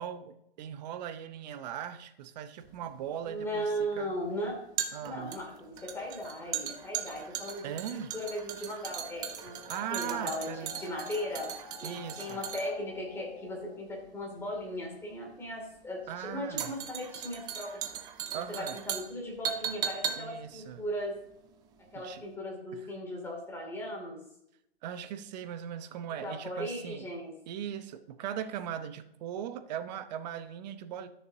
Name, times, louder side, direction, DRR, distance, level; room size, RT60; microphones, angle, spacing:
voice 1, 0.0-4.1 4.9-5.4 7.6-8.1 9.7-10.7 11.8-12.4 16.1-16.7 18.3-18.8 20.2-20.8 21.9-22.2 22.7-22.8 24.8-27.1 27.5-31.1, right 9 dB, 45° right, 10 dB, 0.8 m, -39 dB
sound 1, 2.6-21.9 22.2-22.3, right 9 dB, 15° right, 0.4 m, -39 dB
voice 2, 3.3-4.6 5.0-9.5 9.9-10.5 10.8-11.5 11.8-17.8 18.5-21.1 21.9-24.2 26.2-27.3, equal, 10° left, -2 dB, 2.5 m, -37 dB
sound 2, 9.1-14.1, left 5 dB, 85° left, 2.0 m, -50 dB
13.0 x 6.6 x 2.8 m, 0.78 s
hypercardioid pair, 145°, 30 cm